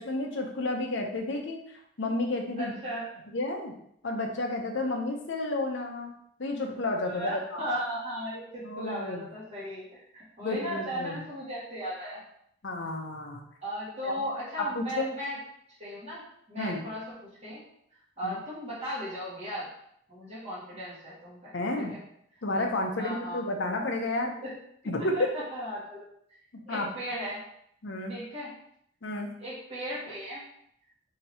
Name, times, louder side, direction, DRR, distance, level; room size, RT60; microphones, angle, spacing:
voice 1, 0.0-1.6 2.0-2.7 3.3-3.7 4.0-6.1 6.4-7.7 8.6-9.3 10.4-11.2 12.6-13.5 14.0-14.1 14.6-15.1 16.6-16.8 18.2-18.3 21.5-21.9 22.4-24.3 24.9-25.2 26.5-27.0 27.8-28.1 29.0-29.3, left 2 dB, 80° left, 2 dB, 0.7 m, -31 dB
voice 2, 2.6-3.1 4.8-4.9 7.0-12.2 13.6-15.4 15.8-16.2 16.5-17.6 18.2-19.7 20.1-21.5 21.9-22.0 23.0-23.4 24.4-24.5 25.0-25.2 25.5-26.0 26.7-27.4 28.1-28.5 29.4-30.4, equal, 35° right, -10 dB, 1.8 m, -36 dB
5.5 x 2.9 x 2.9 m, 0.71 s
head